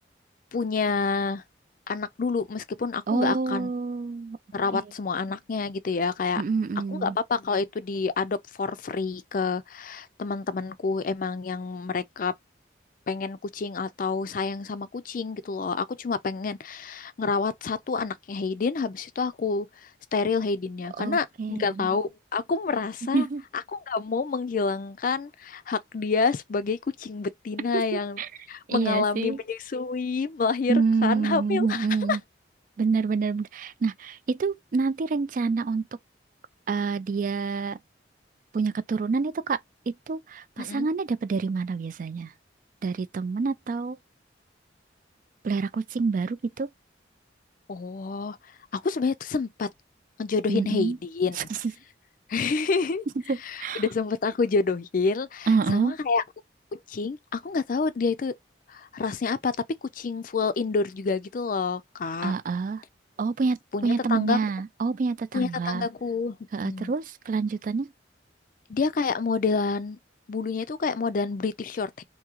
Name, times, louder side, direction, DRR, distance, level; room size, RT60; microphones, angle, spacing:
voice 1, 0.5-1.4 1.9-3.7 4.5-6.4 6.9-12.3 13.1-19.7 20.1-23.3 23.7-28.2 28.5-32.2 40.6-40.9 47.7-48.4 48.7-49.7 50.2-51.4 52.3-53.0 53.4-56.2 56.7-58.3 58.7-59.6 59.8-62.3 63.7-64.4 65.3-66.4 66.6-66.9 68.7-70.0 70.3-72.0, left 4 dB, 45° left, 0.4 m, -28 dB
voice 2, 3.1-4.4 6.4-7.2 21.0-21.9 23.1-23.4 27.7-28.3 28.7-29.4 30.7-32.2 32.8-35.9 36.7-37.8 38.5-39.6 39.9-42.3 42.8-44.0 45.4-46.7 50.5-51.0 51.4-51.6 53.3-53.8 55.5-55.9 62.2-62.8 63.2-65.9 66.5-67.9, right 4 dB, 45° right, 0.3 m, -27 dB
3.6 x 2.7 x 2.9 m
head